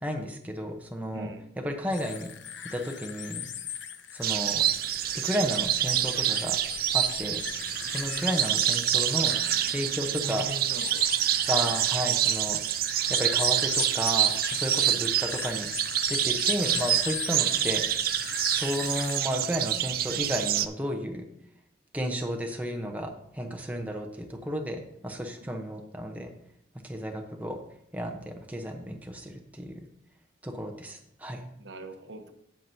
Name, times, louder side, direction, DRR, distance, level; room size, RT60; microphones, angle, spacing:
voice 1, 0.0-1.3 1.6-2.3 2.7-3.5 4.1-4.7 5.1-6.6 6.9-7.4 7.9-9.4 9.7-10.5 11.5-12.6 13.1-15.7 16.1-17.8 18.5-21.2 21.9-26.3 26.8-27.6 27.9-29.9 30.4-31.5, equal, 10° right, 3 dB, 0.8 m, -32 dB
voice 2, 1.1-1.5 8.9-11.1 14.7-15.1 17.3-17.6 31.6-32.3, right 1 dB, 75° right, 6 dB, 1.0 m, -43 dB
sound 1, 1.9-19.2, left 9 dB, 80° left, 0.7 m, -39 dB
sound 2, 4.2-20.7, right 12 dB, 50° right, 0.4 m, -27 dB
15.5 x 5.9 x 2.7 m, 0.77 s
head